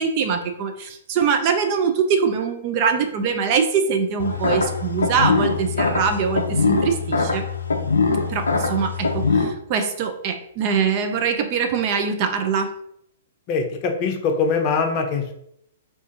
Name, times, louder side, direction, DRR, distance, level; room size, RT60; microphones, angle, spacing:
voice 1, 0.0-7.4 8.3-12.7, right 6 dB, 40° right, 6 dB, 0.4 m, -23 dB
sound 1, 4.2-9.4, left 4 dB, 80° left, 0.5 m, -22 dB
voice 2, 13.5-15.3, left 5 dB, 35° left, 3 dB, 0.6 m, -22 dB
2.5 x 2.5 x 3.7 m, 0.72 s
figure-of-eight pair, 115°, 0 cm